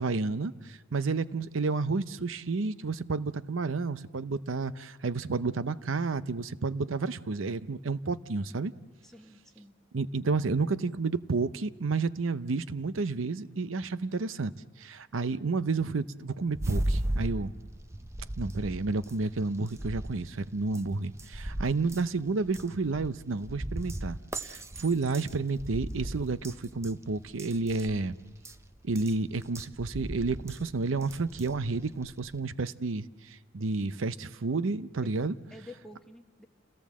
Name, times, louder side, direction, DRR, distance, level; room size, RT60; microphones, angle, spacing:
voice 1, 0.0-8.7 9.9-14.5 14.8-17.5 18.4-28.2 28.8-35.3, right 3 dB, 80° right, 14 dB, 0.7 m, -31 dB
voice 2, 9.0-9.7 35.0-36.5, left 1 dB, ahead, 2 dB, 1.3 m, -50 dB
sound 1, 16.5-32.4, right 1 dB, 15° right, 0.6 m, -38 dB
28.5 x 17.5 x 7.4 m, 1.3 s
head